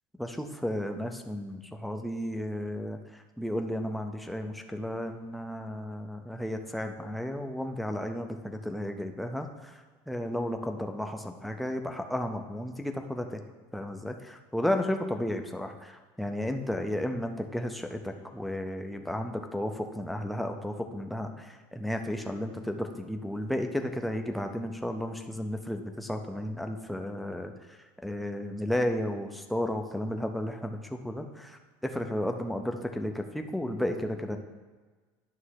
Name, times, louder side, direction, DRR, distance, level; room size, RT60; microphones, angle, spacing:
voice 1, 0.2-9.8 10.1-13.4 13.7-27.5 28.0-34.4, left 1 dB, ahead, 4 dB, 0.4 m, -33 dB
9.4 x 3.2 x 6.3 m, 1.4 s
cardioid pair, 175°, 9 cm